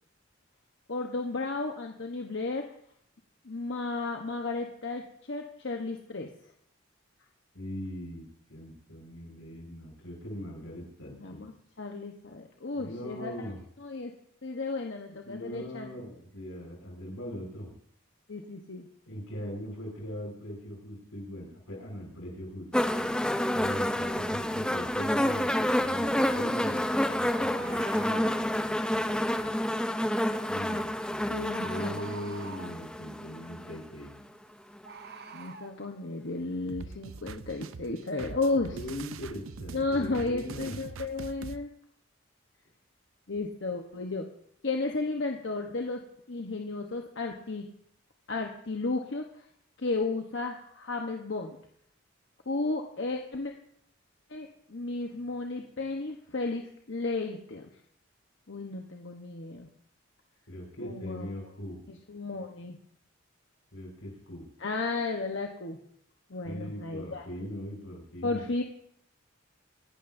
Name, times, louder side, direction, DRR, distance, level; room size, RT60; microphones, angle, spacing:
voice 1, 0.9-2.6 3.4-6.3 11.1-11.5 11.8-13.5 13.8-14.1 14.4-15.9 18.3-18.9 31.3-32.0 35.3-38.8 39.7-41.7 43.3-44.3 44.6-46.0 46.3-47.7 48.3-49.2 49.8-51.6 52.5-53.5 54.3-57.7 58.5-59.7 60.8-61.3 61.9-62.8 64.6-65.8 66.3-67.2 68.2-68.6, left 3 dB, 60° left, 2 dB, 1.0 m, -33 dB
voice 2, 7.5-11.4 12.7-13.6 15.2-17.7 19.1-22.9 23.5-29.5 30.5-34.1 38.7-40.8 60.5-61.8 63.7-64.4 66.4-68.4, equal, 90° left, -2 dB, 6.3 m, -40 dB
sound 1, 22.7-33.8 34.8-34.9, left 1 dB, 5° left, 0.5 m, -29 dB
Bird, 27.4-28.4 30.7-30.9 31.5-32.8 34.8-35.7, right 4 dB, 50° right, 0.9 m, -45 dB
sound 2, 36.7-41.6, right 4 dB, 90° right, 0.6 m, -43 dB
25.5 x 11.5 x 2.6 m, 0.70 s
head